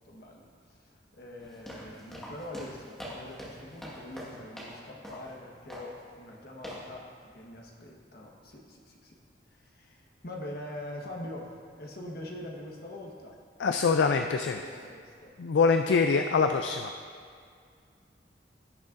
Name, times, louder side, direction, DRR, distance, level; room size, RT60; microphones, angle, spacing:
voice 1, 0.0-9.2 9.5-13.4 13.9-15.3, left 1 dB, 55° left, -1 dB, 1.3 m, -44 dB
sound 1, 1.4-4.8 5.0-5.3 5.7-6.0 6.6-6.9, equal, ahead, 1.5 m, -43 dB
voice 2, 13.6-14.6 15.4-16.9, left 5 dB, 75° left, 6 dB, 0.3 m, -24 dB
16.0 x 6.3 x 2.6 m, 2.2 s
head